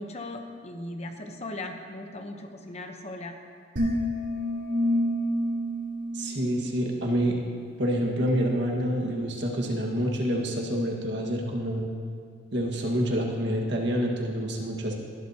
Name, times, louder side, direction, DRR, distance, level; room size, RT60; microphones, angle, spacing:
voice 1, 0.0-3.4, left 2 dB, 35° left, 4 dB, 1.0 m, -38 dB
sound 1, 3.8-7.1, equal, 85° right, 3.4 m, -28 dB
voice 2, 6.1-7.4 7.8-11.9 12.5-14.9, equal, 65° right, -1 dB, 1.8 m, -27 dB
19.0 x 12.0 x 2.9 m, 2.1 s
head